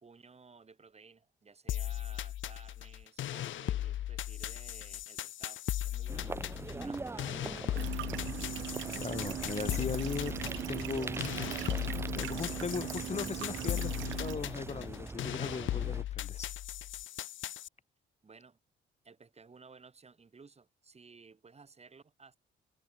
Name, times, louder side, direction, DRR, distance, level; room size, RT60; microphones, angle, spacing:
voice 1, 0.0-7.8 18.2-18.6 19.0-22.4, right 4 dB, 30° right, 6.9 m, -57 dB
sound 1, 1.7-17.7, left 13 dB, 75° left, 1.9 m, -38 dB
sound 2, 6.1-16.0, right 3 dB, 15° right, 0.4 m, -42 dB
sound 3, 7.7-14.3, right 14 dB, 75° right, 0.8 m, -40 dB
voice 2, 9.0-10.4 10.7-11.3 12.1-16.5, left 5 dB, 35° left, 2.1 m, -38 dB
cardioid pair, 90°, 20 cm